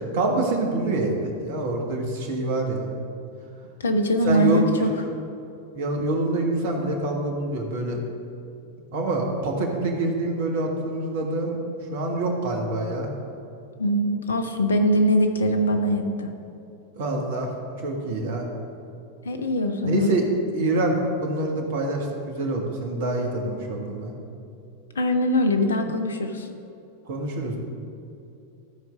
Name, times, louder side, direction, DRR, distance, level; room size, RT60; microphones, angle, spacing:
voice 1, 0.0-2.9 4.2-4.9 5.7-8.0 8.9-11.6 11.9-13.1 17.0-17.5 17.8-18.5 19.8-20.2 20.5-24.1 27.1-27.6, right 2 dB, 55° right, 1 dB, 1.6 m, -26 dB
voice 2, 3.8-4.9 13.8-16.3 19.2-20.1 25.0-26.5, equal, 70° left, 7 dB, 0.8 m, -22 dB
13.5 x 4.7 x 5.5 m, 2.7 s
figure-of-eight pair, 90°, 0 cm